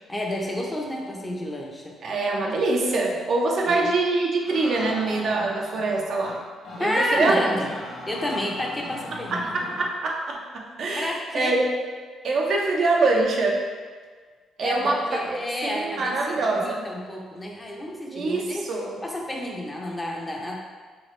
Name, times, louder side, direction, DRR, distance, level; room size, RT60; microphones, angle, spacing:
voice 1, 0.1-2.0 3.7-3.8 6.8-7.7 8.1-9.5 11.0-11.6 14.6-18.7 19.0-20.6, left 1 dB, 15° left, -1 dB, 0.5 m, -30 dB
voice 2, 2.0-6.4 6.8-7.5 9.3-11.7 12.2-13.6 14.6-16.9 18.1-18.9, right 3 dB, 60° right, -1 dB, 0.5 m, -24 dB
sound 1, 4.4-5.9 6.2-6.4 6.6-6.8 7.1-9.9, left 1 dB, 55° left, 0.7 m, -39 dB
3.1 x 2.3 x 3.1 m, 1.5 s
cardioid pair, 90°, 0 cm